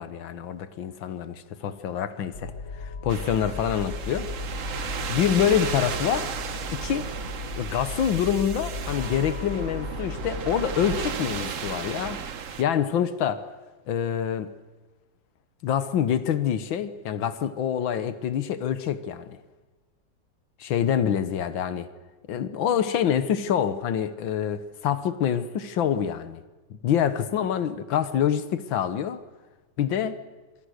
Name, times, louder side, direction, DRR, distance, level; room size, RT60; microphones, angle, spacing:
voice 1, 0.0-4.3 5.1-6.3 6.8-7.0 7.5-12.2 12.6-13.4 13.9-14.5 15.6-19.4 20.6-21.9 22.3-26.4 26.8-29.2 29.8-30.2, left 9 dB, 90° left, 12 dB, 1.9 m, -26 dB
sound 1, 2.3-11.1, left 4 dB, 65° left, 5.3 m, -36 dB
sound 2, 3.1-12.6, right 7 dB, 50° right, 1.2 m, -34 dB
27.5 x 22.5 x 6.5 m, 1.2 s
omnidirectional pair, 2.1 m